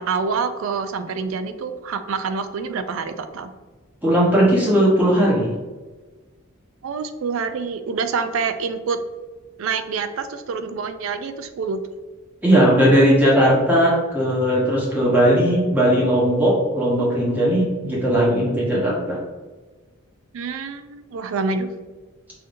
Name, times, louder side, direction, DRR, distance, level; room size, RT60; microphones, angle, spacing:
voice 1, 0.0-3.5 6.8-9.0 9.6-11.8 20.3-21.7, right 5 dB, 70° right, 9 dB, 0.3 m, -26 dB
voice 2, 4.0-5.5 12.4-19.2, equal, 10° right, -6 dB, 1.1 m, -18 dB
4.9 x 2.7 x 2.5 m, 1.3 s
head